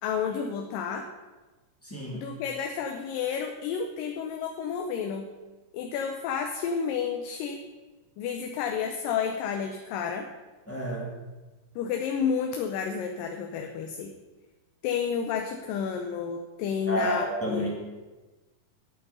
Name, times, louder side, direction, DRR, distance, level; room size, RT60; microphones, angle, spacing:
voice 1, 0.0-1.1 2.1-5.3 5.7-7.6 8.2-10.3 11.8-14.1 14.8-17.7, left 6 dB, 85° left, 4 dB, 2.4 m, -31 dB
voice 2, 1.8-2.3 10.7-11.1 16.9-17.7, equal, 5° left, -3 dB, 1.3 m, -30 dB
9.2 x 8.7 x 5.5 m, 1.2 s
omnidirectional pair, 3.9 m